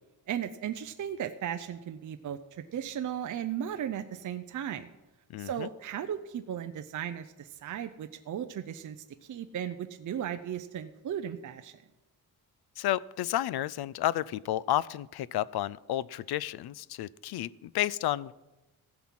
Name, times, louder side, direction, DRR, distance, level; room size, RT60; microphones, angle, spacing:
voice 1, 0.3-4.9 5.4-9.0 9.2-11.8, right 9 dB, 50° right, 8 dB, 0.6 m, -36 dB
voice 2, 5.3-5.7 12.8-18.3, left 13 dB, 75° left, 21 dB, 0.5 m, -31 dB
16.0 x 6.0 x 7.3 m, 1.0 s
wide cardioid pair, 175°, 38 cm